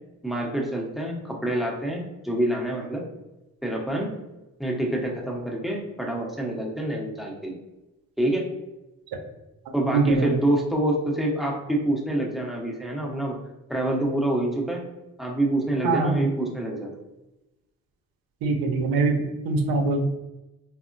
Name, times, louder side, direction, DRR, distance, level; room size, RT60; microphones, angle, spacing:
voice 1, 0.2-3.0 3.6-4.1 4.6-7.6 8.2-8.5 9.7-13.4 13.7-14.8 15.2-16.9, right 1 dB, ahead, -1 dB, 0.9 m, -26 dB
voice 2, 9.9-10.3 15.8-16.2 18.4-20.0, right 3 dB, 80° right, 4 dB, 0.7 m, -23 dB
3.5 x 2.0 x 2.5 m, 0.99 s
supercardioid pair, 55°, 36 cm